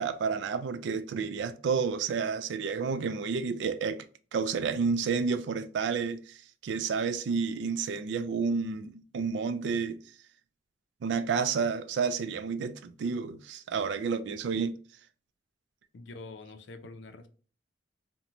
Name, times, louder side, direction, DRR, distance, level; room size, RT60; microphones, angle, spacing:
voice 1, 0.0-4.1 4.3-10.0 11.0-14.7, right 5 dB, 70° right, 0.3 m, -30 dB
voice 2, 15.9-17.3, left 3 dB, 80° left, 0.5 m, -45 dB
2.9 x 2.1 x 2.5 m
head